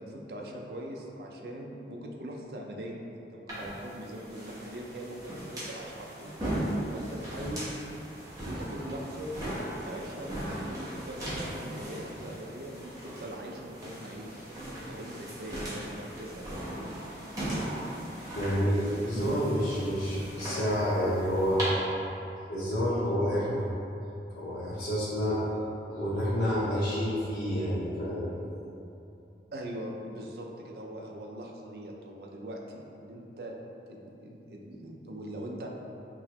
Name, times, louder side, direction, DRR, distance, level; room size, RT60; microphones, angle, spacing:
voice 1, 0.0-3.0 3.3-6.4 6.9-7.7 8.4-9.3 9.8-14.3 14.8-16.9 29.5-33.5 33.9-35.7, right 1 dB, 60° right, 0 dB, 0.4 m, -41 dB
sound 1, 3.5-21.6, right 1 dB, 20° right, 0.9 m, -38 dB
voice 2, 18.3-21.6 22.5-23.6 24.4-25.4 25.9-28.3, equal, 85° left, -10 dB, 0.8 m, -29 dB
5.9 x 2.0 x 2.9 m, 2.8 s
head